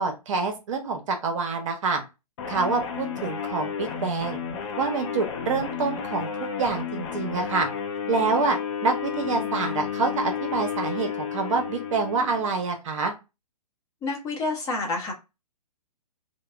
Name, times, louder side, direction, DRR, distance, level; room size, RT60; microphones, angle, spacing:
voice 1, 0.0-2.0 2.5-4.4 4.8-6.3 6.6-7.7 8.1-13.1, right 4 dB, 50° right, 4 dB, 0.9 m, -26 dB
sound 1, 2.4-12.6, left 7 dB, 45° left, 0.7 m, -32 dB
voice 2, 14.0-15.1, left 3 dB, 15° left, -1 dB, 0.8 m, -28 dB
2.9 x 2.2 x 3.5 m, 0.26 s
hypercardioid pair, 135°, 21 cm